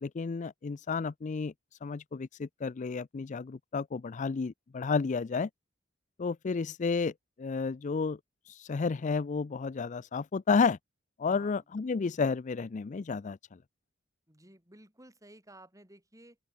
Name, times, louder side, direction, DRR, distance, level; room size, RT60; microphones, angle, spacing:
voice 1, 0.0-1.5 1.8-5.5 6.2-7.1 7.4-8.2 8.5-10.8 11.2-13.4, left 4 dB, 40° left, 0.4 m, -31 dB
voice 2, 11.3-11.6 14.3-16.4, right 1 dB, 15° right, 7.9 m, -55 dB
open air
head